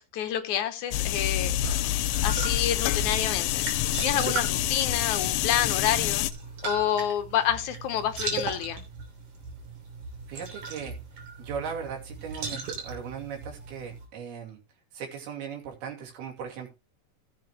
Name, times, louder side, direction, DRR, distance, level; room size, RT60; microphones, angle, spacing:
voice 1, 0.0-1.6 1.9-3.7 4.0-6.3 6.6-8.8, left 10 dB, 65° left, 2.1 m, -28 dB
sound 1, 0.9-6.3, left 15 dB, 80° left, 2.4 m, -27 dB
sound 2, 1.2-14.1, right 4 dB, 55° right, 4.4 m, -38 dB
sound 3, 1.6-3.9 4.2-4.6 5.6-6.0 7.3-7.6, left 3 dB, 50° left, 3.3 m, -39 dB
voice 2, 10.3-11.0 11.4-12.6 12.8-14.6 14.9-16.7, right 7 dB, 90° right, 4.5 m, -38 dB
15.5 x 7.9 x 3.2 m
omnidirectional pair, 4.3 m